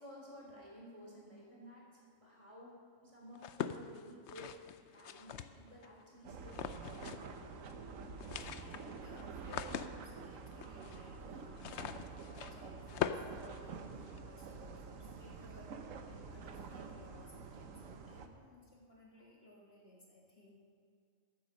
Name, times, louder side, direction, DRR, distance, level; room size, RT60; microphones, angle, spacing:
voice 1, 0.0-7.6, equal, 25° right, -4 dB, 3.7 m, -54 dB
sound 1, 3.4-5.9 6.5-7.4 7.6-7.7 8.0-14.2, left 9 dB, 65° left, 0.8 m, -43 dB
sound 2, 6.2-18.3, right 5 dB, 80° right, 1.3 m, -48 dB
voice 2, 8.0-11.7 12.0-15.7 16.1-20.7, left 1 dB, 50° left, -3 dB, 2.1 m, -60 dB
14.5 x 8.7 x 6.4 m, 2.3 s
omnidirectional pair, 1.3 m